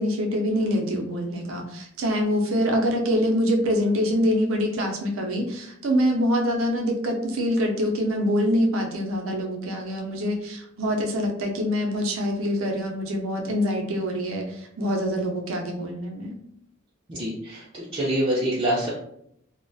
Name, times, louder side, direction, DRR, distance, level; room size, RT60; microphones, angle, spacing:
voice 1, 0.0-16.4, equal, 80° right, 2 dB, 0.5 m, -25 dB
voice 2, 17.1-18.9, right 1 dB, 25° right, -7 dB, 0.4 m, -26 dB
2.3 x 2.1 x 2.6 m, 0.73 s
head